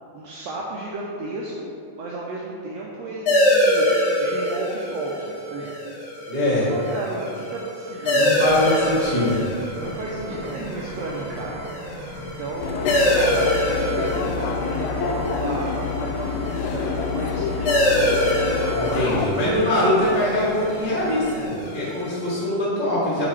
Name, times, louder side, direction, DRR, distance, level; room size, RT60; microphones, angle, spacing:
voice 1, 0.1-1.7 2.0-3.9 4.2-5.7 6.4-8.7 9.8-11.6 12.2-18.2, right 2 dB, 85° right, -4 dB, 1.5 m, -33 dB
sound 1, 3.3-22.4, equal, 60° left, 1.3 m, -25 dB
voice 2, 6.3-6.6 8.1-9.4 18.7-23.3, left 1 dB, 50° right, -12 dB, 0.5 m, -23 dB
sound 2, 8.4-21.5, right 1 dB, 65° right, 2.0 m, -39 dB
sound 3, 12.6-19.3, left 5 dB, 80° left, 1.7 m, -27 dB
5.9 x 4.2 x 4.6 m, 2.6 s
omnidirectional pair, 3.5 m